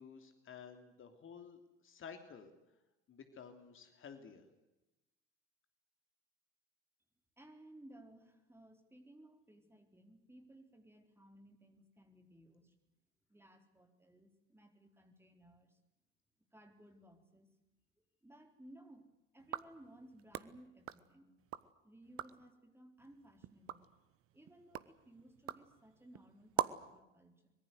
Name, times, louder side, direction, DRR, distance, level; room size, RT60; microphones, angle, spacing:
voice 1, 0.0-2.5 3.1-4.5, left 6 dB, 35° left, 7 dB, 2.9 m, -53 dB
voice 2, 7.4-12.8 13.3-15.8 16.5-17.5 18.0-21.3 21.8-23.9 24.3-27.5, right 1 dB, 5° right, 5 dB, 4.2 m, -60 dB
sound 1, 19.4-21.7 22.0-22.5 23.0-27.0, right 12 dB, 40° right, 1.1 m, -44 dB
24.5 x 22.5 x 8.1 m, 0.96 s
figure-of-eight pair, 65°, 36 cm